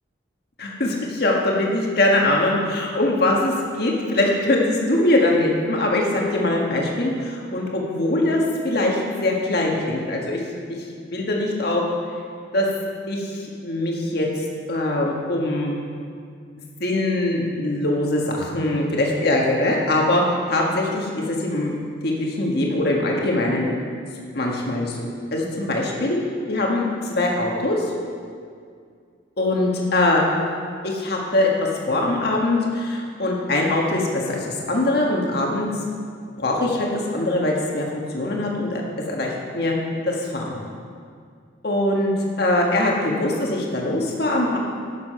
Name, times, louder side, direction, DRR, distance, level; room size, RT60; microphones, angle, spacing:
voice 1, 0.6-10.4 11.0-11.8 12.5-12.7 13.1-15.7 16.8-21.7 22.0-23.7 24.3-25.0 25.3-26.2 26.5-27.9 29.4-30.2 30.8-31.5 31.9-35.7 36.4-39.7 40.0-40.6 41.6-42.1 42.4-44.6, left 1 dB, 55° left, -1 dB, 1.6 m, -22 dB
11.5 x 7.2 x 5.6 m, 2.2 s
head